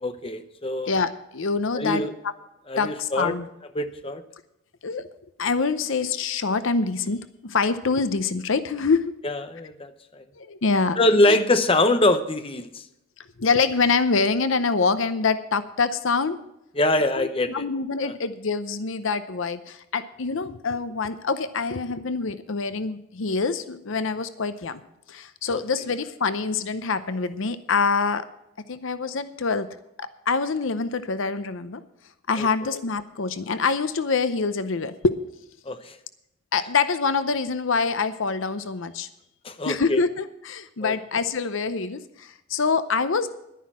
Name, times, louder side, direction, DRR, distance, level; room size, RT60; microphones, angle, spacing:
voice 1, 0.0-0.9 1.7-2.1 2.7-3.3 3.7-4.2 9.2-10.2 11.0-12.8 16.8-17.6 18.0-18.1 25.5-25.6 32.4-32.5 35.7-36.0 39.4-40.0 40.8-40.9, left 1 dB, 25° left, 9 dB, 0.8 m, -23 dB
voice 2, 0.9-2.3 2.8-3.5 4.8-5.1 5.4-9.1 10.4-11.0 11.3-11.4 13.2-16.4 17.1-24.8 25.1-28.3 28.7-29.7 30.0-31.8 32.3-35.2 36.5-39.1 39.6-43.3, left 4 dB, 60° left, 12 dB, 0.7 m, -25 dB
11.5 x 10.0 x 6.1 m, 0.87 s
head